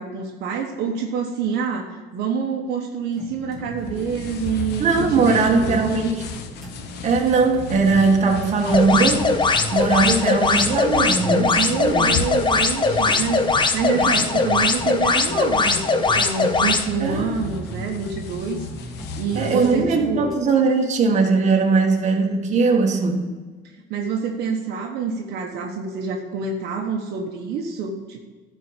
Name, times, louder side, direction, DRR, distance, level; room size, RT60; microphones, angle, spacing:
voice 1, 0.0-5.9 11.5-18.6 19.2-20.3 23.9-28.2, right 5 dB, 80° right, 2 dB, 1.2 m, -27 dB
sound 1, 3.1-20.3, equal, ahead, 2.8 m, -36 dB
sound 2, 3.8-19.8, left 6 dB, 80° left, 1.0 m, -36 dB
voice 2, 4.8-6.2 7.0-9.4 9.7-12.1 13.9-14.1 17.0-17.3 19.3-23.2, right 4 dB, 45° right, 1 dB, 1.7 m, -19 dB
sound 3, 8.7-16.8, left 3 dB, 30° left, 0.9 m, -20 dB
11.5 x 4.7 x 8.0 m, 1.4 s
cardioid pair, 110°, 17 cm